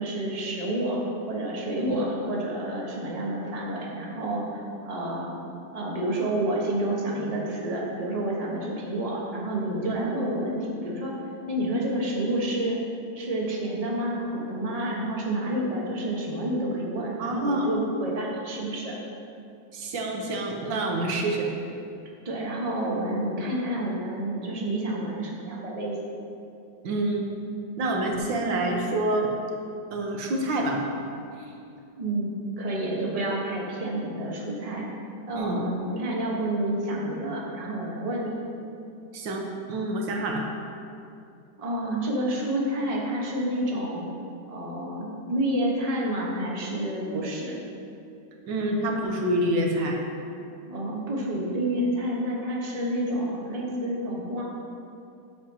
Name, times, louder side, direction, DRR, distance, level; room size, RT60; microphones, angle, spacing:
voice 1, 0.0-5.3 5.7-11.1 11.5-12.8 13.1-19.0 22.2-26.1 32.0-34.9 35.3-38.4 41.6-44.1 44.5-47.6 50.7-54.4, right 1 dB, 25° right, -3 dB, 1.2 m, -29 dB
voice 2, 17.2-17.7 19.7-21.5 26.8-27.3 27.8-29.3 29.9-30.8 31.4-31.5 35.4-35.6 39.1-40.4 48.5-50.0, right 1 dB, 90° right, 1 dB, 1.8 m, -27 dB
13.0 x 7.5 x 2.9 m, 2.6 s
omnidirectional pair, 1.9 m